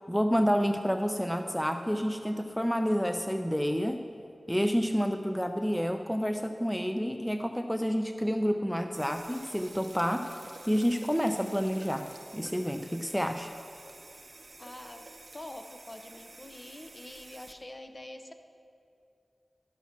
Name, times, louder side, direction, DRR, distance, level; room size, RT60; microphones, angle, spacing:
voice 1, 0.1-4.0 4.5-10.3 10.7-12.1 12.3-13.5, equal, 5° left, 6 dB, 0.5 m, -29 dB
sound 1, 8.9-17.5, right 2 dB, 55° right, 0.8 m, -50 dB
voice 2, 14.6-15.1 15.3-18.3, left 1 dB, 40° left, 6 dB, 0.9 m, -45 dB
12.5 x 5.9 x 5.8 m, 2.6 s
cardioid pair, 40°, 0 cm